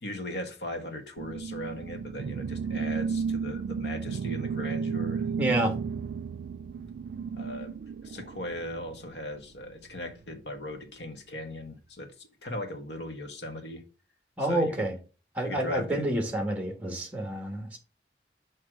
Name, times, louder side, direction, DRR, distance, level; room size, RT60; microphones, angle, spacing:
voice 1, 0.0-5.3 7.3-7.7 8.0-13.8 14.4-14.9 15.4-16.0, left 1 dB, 80° left, 1.4 m, -38 dB
sound 1, 1.2-8.9, right 6 dB, 85° right, 0.3 m, -33 dB
voice 2, 5.4-5.7 14.4-14.9 15.3-17.8, right 1 dB, 10° right, 1.3 m, -28 dB
6.3 x 3.2 x 5.9 m
head